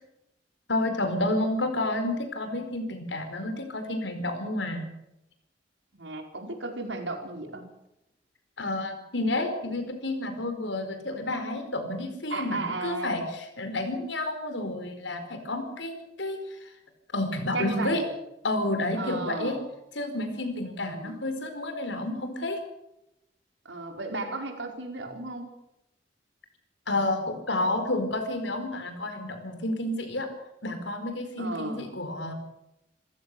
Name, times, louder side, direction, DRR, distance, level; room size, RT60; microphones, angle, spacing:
voice 1, 0.7-4.9 8.6-16.7 17.1-18.0 18.4-19.6 19.9-22.6 26.9-30.3 30.6-32.3, left 2 dB, 85° left, 7 dB, 4.7 m, -30 dB
voice 2, 5.9-7.6 12.3-13.3 17.5-18.1 19.0-19.7 20.8-21.2 23.6-25.5 31.4-31.9, right 2 dB, 85° right, 4 dB, 4.6 m, -34 dB
27.0 x 15.5 x 6.9 m, 0.87 s
head